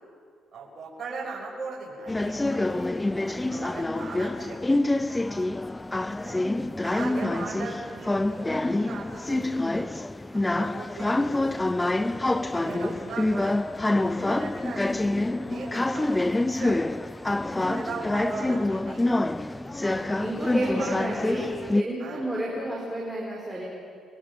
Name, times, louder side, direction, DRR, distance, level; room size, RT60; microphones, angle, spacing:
voice 1, 0.5-2.7 3.3-5.5 6.2-6.4 6.8-9.9 10.3-12.2 12.5-13.6 14.0-16.9 17.5-19.1 19.5-19.7 20.2-20.5 20.8-21.1 22.0-22.2, right 4 dB, 50° right, -4 dB, 6.8 m, -39 dB
sound 1, 2.1-21.8, left 2 dB, 15° left, 0.5 m, -26 dB
voice 2, 2.4-3.2 3.5-3.9 6.2-6.8 7.1-7.3 12.6-13.0 17.3-17.7 19.8-23.6, right 1 dB, 10° right, -4 dB, 4.9 m, -33 dB
28.0 x 22.0 x 5.2 m, 2.2 s
cardioid pair, 90°, 0 cm